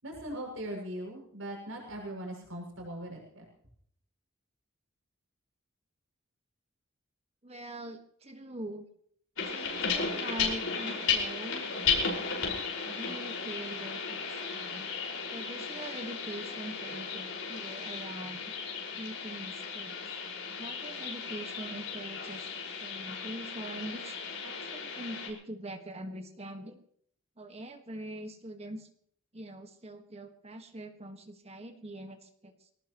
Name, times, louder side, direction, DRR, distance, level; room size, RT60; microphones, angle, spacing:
voice 1, 0.0-3.4, right 1 dB, 80° right, 0 dB, 7.0 m, -40 dB
voice 2, 7.4-8.9 9.4-11.6 12.9-14.9 15.3-18.4 19.0-20.0 20.6-26.8 27.4-28.9 29.3-32.5, right 1 dB, 30° right, 6 dB, 1.8 m, -43 dB
sound 1, 9.4-25.3, left 5 dB, 80° left, 5.7 m, -35 dB
23.5 x 18.5 x 3.2 m, 0.65 s
head